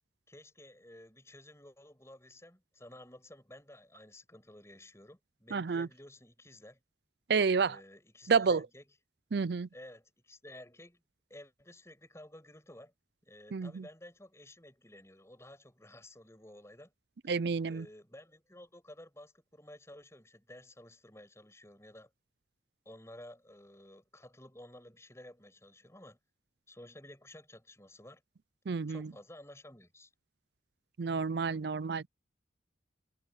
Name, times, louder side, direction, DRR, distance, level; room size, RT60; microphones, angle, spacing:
voice 1, 0.3-6.8 7.6-8.8 9.7-11.0 11.3-12.9 13.2-16.9 17.6-22.1 22.8-26.2 26.7-28.2 28.9-30.1, left 1 dB, 15° left, 6.2 m, -53 dB
voice 2, 5.5-5.9 7.3-7.8 8.3-8.7 9.3-9.7 13.5-13.9 17.3-17.9 28.7-29.1 31.0-32.1, right 5 dB, 55° right, 0.5 m, -30 dB
head